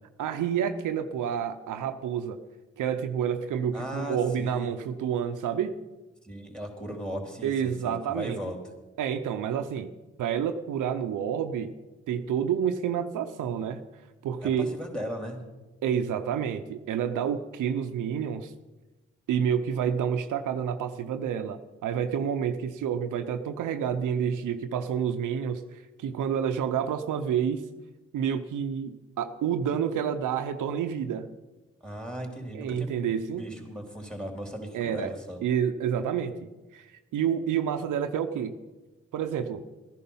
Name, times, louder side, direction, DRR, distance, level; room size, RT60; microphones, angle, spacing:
voice 1, 0.2-2.4 2.8-5.8 7.4-8.4 9.0-9.9 10.2-11.8 12.1-13.8 14.2-14.7 15.8-18.5 19.3-27.6 28.1-31.3 32.5-33.4 34.7-35.1 35.4-38.6 39.1-39.6, right 8 dB, 85° right, 9 dB, 0.7 m, -29 dB
voice 2, 3.7-4.7 6.2-8.6 14.4-15.4 31.8-32.9 33.4-35.4, equal, 5° left, 2 dB, 3.5 m, -37 dB
14.0 x 10.5 x 5.5 m, 1.1 s
supercardioid pair, 45°, 30 cm